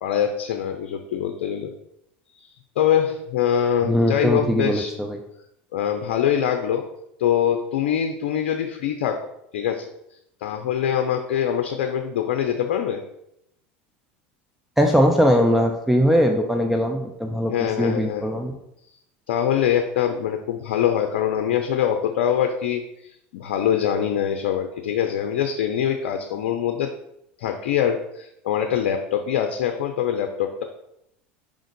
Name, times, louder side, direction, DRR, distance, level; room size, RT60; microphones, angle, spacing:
voice 1, 0.0-1.7 2.4-2.5 2.8-4.9 5.7-6.9 7.2-9.3 9.5-9.9 10.4-13.0 17.5-18.3 19.3-26.9 27.4-30.6, left 9 dB, 75° left, 5 dB, 0.6 m, -24 dB
voice 2, 3.9-5.2 14.8-17.5 17.8-18.5, equal, 5° right, 3 dB, 0.6 m, -20 dB
5.1 x 3.7 x 5.2 m, 0.80 s
hypercardioid pair, 90°, 6 cm